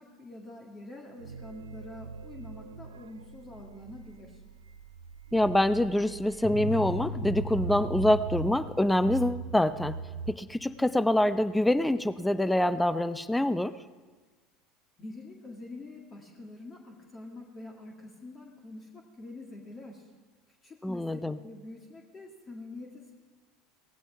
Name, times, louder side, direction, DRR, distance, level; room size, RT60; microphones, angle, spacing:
voice 1, 0.0-4.4 15.0-20.1 20.5-23.1, left 2 dB, 30° left, 1 dB, 2.0 m, -46 dB
sound 1, 1.2-10.3, right 5 dB, 80° right, 0.4 m, -41 dB
voice 2, 5.3-10.0 10.3-13.7 20.8-21.4, left 1 dB, 5° left, 15 dB, 0.5 m, -25 dB
sound 2, 6.4-11.6, left 2 dB, 55° left, 3.9 m, -40 dB
18.0 x 16.0 x 3.5 m, 1.3 s
figure-of-eight pair, 70°, 0 cm